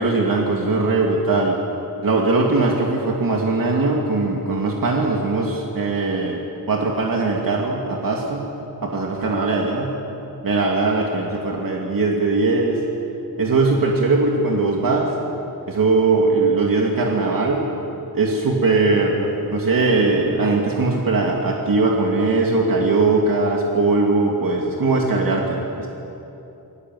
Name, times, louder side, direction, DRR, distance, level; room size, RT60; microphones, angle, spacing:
voice 1, 0.0-1.6 2.0-6.4 6.7-8.5 8.8-10.0 10.4-12.8 13.4-15.1 15.7-17.7 18.1-25.9, right 3 dB, 60° right, -1 dB, 2.8 m, -20 dB
29.0 x 22.0 x 8.0 m, 2.9 s
wide cardioid pair, 160°, 37 cm